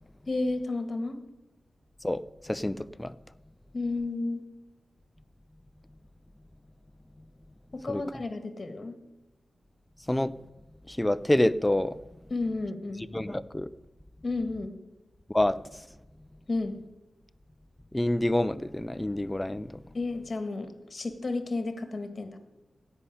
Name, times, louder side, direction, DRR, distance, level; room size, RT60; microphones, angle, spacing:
voice 1, 0.3-1.2 3.7-4.5 7.7-8.9 12.3-13.0 14.2-14.7 16.5-16.7 19.9-22.4, left 2 dB, 40° left, 9 dB, 1.7 m, -32 dB
voice 2, 2.0-3.1 7.9-8.0 10.1-10.3 10.9-12.0 13.1-13.7 15.3-15.8 17.9-19.8, left 1 dB, 10° left, 15 dB, 0.5 m, -27 dB
16.0 x 5.6 x 9.9 m, 1.0 s
wide cardioid pair, 100°, 0 cm